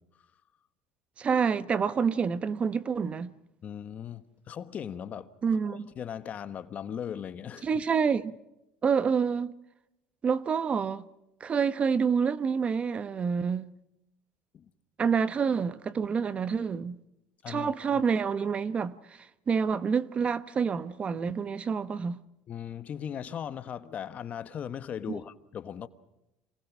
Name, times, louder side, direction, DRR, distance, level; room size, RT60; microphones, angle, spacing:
voice 1, 1.2-3.3 5.4-5.9 7.6-8.3 8.8-9.5 10.2-11.0 11.4-13.7 15.0-17.0 17.5-22.2 25.1-25.2, right 6 dB, 30° right, 0.9 m, -28 dB
voice 2, 3.6-5.3 6.0-7.7 14.5-14.6 17.4-18.0 22.5-25.9, left 8 dB, 40° left, 1.3 m, -38 dB
27.0 x 19.5 x 6.1 m
supercardioid pair, 105°, 4 cm